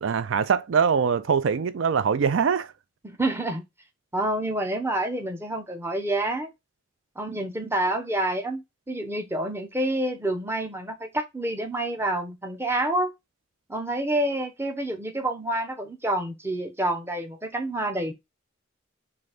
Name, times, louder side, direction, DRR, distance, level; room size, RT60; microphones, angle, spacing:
voice 1, 0.0-2.7, right 6 dB, 70° right, 0.4 m, -23 dB
voice 2, 3.0-3.6 4.1-6.5 7.2-13.1 13.7-18.1, right 1 dB, 10° right, 0.7 m, -28 dB
4.0 x 3.3 x 3.3 m
head